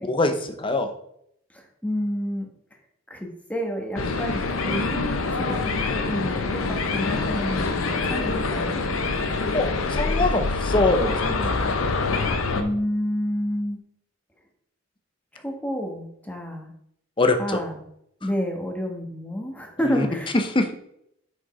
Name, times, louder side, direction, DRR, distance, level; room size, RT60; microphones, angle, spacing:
voice 1, 0.1-0.9 9.5-11.5 17.2-17.6 19.8-20.1 20.3-20.7, left 2 dB, 25° left, 7 dB, 0.7 m, -23 dB
voice 2, 1.5-2.5 3.1-8.8 12.5-13.8 15.3-16.7 17.4-17.8 18.2-20.3, equal, 5° left, 2 dB, 1.2 m, -29 dB
sound 1, 4.0-12.6, left 3 dB, 85° left, 0.8 m, -25 dB
6.2 x 5.2 x 4.2 m, 0.73 s
head